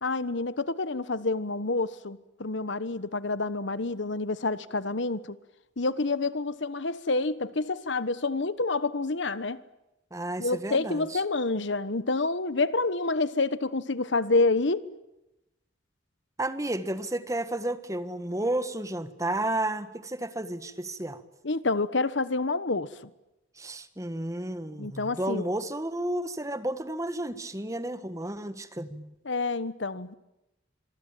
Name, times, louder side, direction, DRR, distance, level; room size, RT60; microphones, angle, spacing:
voice 1, 0.0-5.4 5.8-9.6 10.4-14.8 21.4-22.9 24.8-25.4 29.2-30.1, left 3 dB, 70° left, 15 dB, 1.2 m, -28 dB
voice 2, 10.1-11.2 16.4-21.2 23.6-29.1, right 1 dB, 15° right, 11 dB, 1.6 m, -32 dB
26.0 x 24.0 x 9.1 m, 0.93 s
head